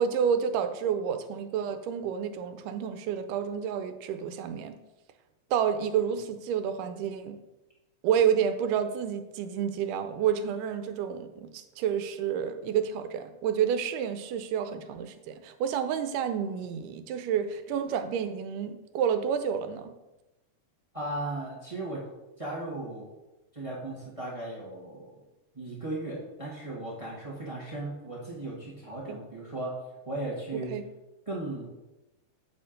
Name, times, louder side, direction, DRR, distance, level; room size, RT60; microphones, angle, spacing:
voice 1, 0.0-4.8 5.5-7.4 8.0-19.9 29.1-29.2 30.7-30.8, right 8 dB, 90° right, 8 dB, 2.3 m, -29 dB
voice 2, 20.9-22.0 22.4-23.1 23.5-25.2 25.5-29.7 30.0-30.7 31.3-31.6, right 2 dB, 20° right, -5 dB, 0.8 m, -36 dB
8.9 x 4.4 x 5.1 m, 1.0 s
omnidirectional pair, 3.6 m